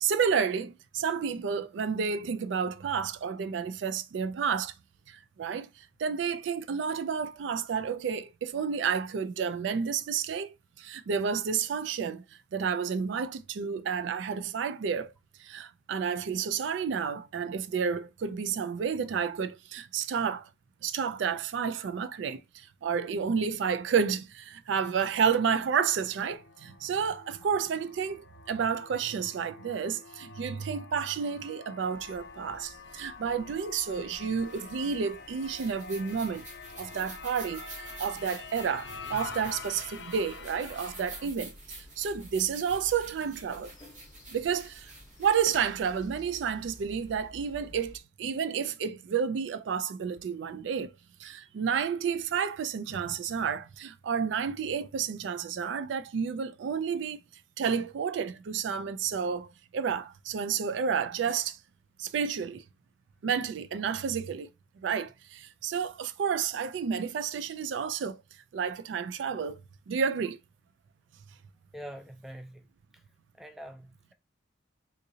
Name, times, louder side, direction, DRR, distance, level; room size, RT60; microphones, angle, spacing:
voice 1, 0.0-4.7 5.1-12.2 12.5-15.1 15.4-20.5 20.8-36.4 36.8-43.7 44.3-44.9 45.2-50.9 51.2-57.2 57.6-61.6 62.0-62.6 63.2-64.5 64.8-68.2 68.5-69.6 69.9-70.4, right 6 dB, 80° right, 0.3 m, -31 dB
sound 1, 25.3-41.3, left 5 dB, 65° left, 0.5 m, -47 dB
sound 2, 31.9-48.0, left 1 dB, 20° left, 0.7 m, -53 dB
sound 3, 34.4-46.8, right 3 dB, 40° right, 0.9 m, -49 dB
voice 2, 71.7-72.6 72.9-73.0 73.4-74.1, equal, ahead, 0.3 m, -44 dB
3.8 x 2.7 x 2.6 m
head